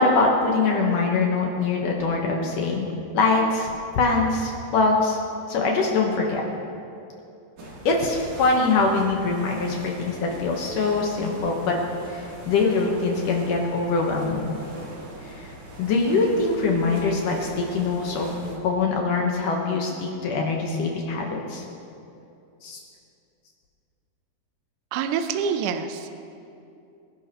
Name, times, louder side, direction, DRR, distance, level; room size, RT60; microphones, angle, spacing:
voice 1, 0.0-2.9 3.1-3.7 4.0-5.2 5.5-6.4 7.9-11.8 12.1-14.6 15.2-15.5 15.8-18.3 18.6-21.6 22.6-22.8, left 3 dB, 65° left, 0 dB, 2.4 m, -23 dB
sound 1, 7.6-18.6, right 1 dB, 55° right, 3.6 m, -41 dB
voice 2, 24.9-26.2, right 6 dB, 85° right, 7 dB, 1.8 m, -26 dB
24.5 x 11.0 x 3.1 m, 2.6 s
omnidirectional pair, 4.7 m